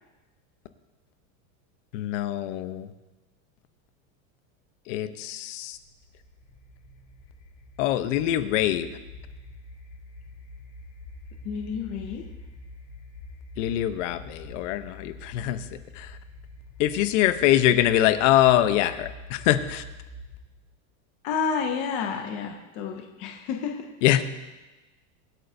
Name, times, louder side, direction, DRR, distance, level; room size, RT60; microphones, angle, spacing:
voice 1, 1.9-2.9 4.9-5.8 7.8-8.9 13.6-15.6 15.9-16.2 16.8-19.8 24.0-24.2, left 13 dB, 55° left, 11 dB, 0.9 m, -23 dB
sound 1, 5.7-20.6, left 1 dB, 40° left, 2.4 m, -45 dB
voice 2, 11.4-12.3 21.2-23.9, left 6 dB, 20° left, 3 dB, 0.3 m, -30 dB
24.0 x 8.9 x 2.7 m, 1.1 s
supercardioid pair, 170°, 43 cm